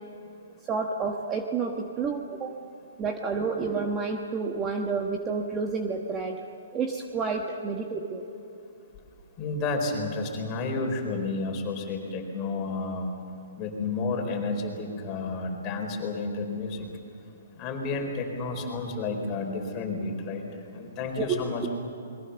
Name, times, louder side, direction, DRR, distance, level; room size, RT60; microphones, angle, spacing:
voice 1, 0.7-2.6 3.0-6.4 6.7-8.2 21.1-21.2, right 4 dB, 15° right, 2 dB, 1.3 m, -30 dB
voice 2, 9.4-13.1 13.6-16.9 17.6-20.4 20.7-21.7, left 3 dB, 20° left, 2 dB, 4.3 m, -31 dB
28.5 x 22.5 x 7.0 m, 2.8 s
hypercardioid pair, 165°, 0 cm